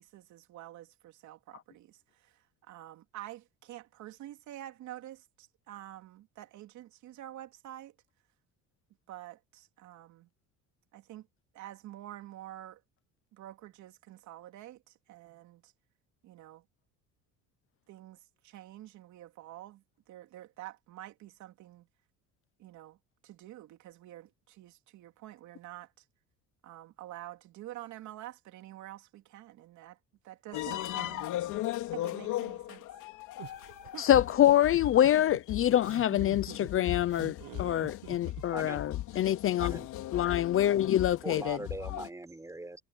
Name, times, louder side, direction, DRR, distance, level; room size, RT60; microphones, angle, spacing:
voice 1, 0.0-7.9 9.1-10.3 10.9-11.3 11.5-12.8 13.3-15.7 16.2-16.6 17.9-21.9 22.6-23.0 23.2-26.0 26.6-30.0 30.2-31.3 31.9-32.8, right 14 dB, 65° right, 3.1 m, -48 dB
sound 1, 30.5-42.1, left 14 dB, 70° left, 3.7 m, -38 dB
sound 2, 33.4-38.7, right 18 dB, 85° right, 1.4 m, -47 dB
voice 2, 34.0-39.7 40.1-41.6, left 12 dB, 45° left, 0.7 m, -26 dB
voice 3, 38.5-38.8 39.6-39.9 41.2-42.8, right 2 dB, 10° right, 6.7 m, -41 dB
cardioid pair, 130°, 31 cm